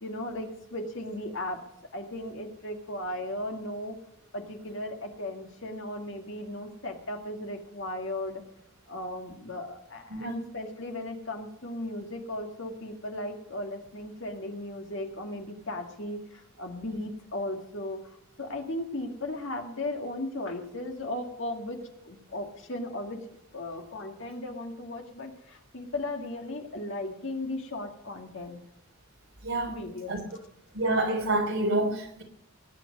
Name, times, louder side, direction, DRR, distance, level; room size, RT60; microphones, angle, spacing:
voice 1, 0.0-1.7 1.9-4.0 4.3-8.4 8.9-23.2 23.5-28.6 29.7-30.2, left 1 dB, 60° left, 3 dB, 2.1 m, -36 dB
voice 2, 29.4-29.8 30.1-30.2 30.7-32.2, right 2 dB, 70° right, 3 dB, 3.4 m, -27 dB
19.5 x 9.1 x 5.3 m, 0.81 s
head